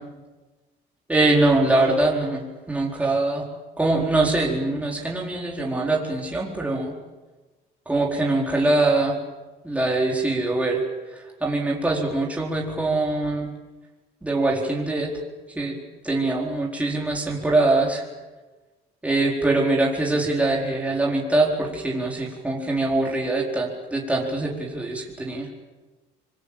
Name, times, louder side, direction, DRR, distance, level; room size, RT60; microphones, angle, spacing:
voice 1, 1.1-3.4 3.8-6.9 7.9-9.2 9.6-10.8 11.1-13.5 14.2-15.1 15.6-15.8 16.0-18.0 19.0-25.5, right 2 dB, 10° right, -2 dB, 4.5 m, -23 dB
26.0 x 21.5 x 8.9 m, 1.2 s
cardioid pair, 110°, 17 cm